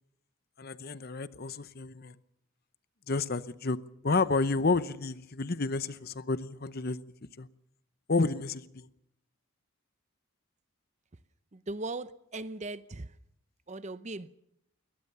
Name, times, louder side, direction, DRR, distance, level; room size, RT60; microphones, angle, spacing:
voice 1, 0.6-2.1 3.1-3.8 4.0-7.0 7.4-7.5 8.1-8.9, left 3 dB, 45° left, 0.8 m, -30 dB
voice 2, 11.5-13.1 13.7-14.3, right 2 dB, 35° right, 0.7 m, -38 dB
22.5 x 19.0 x 6.8 m
head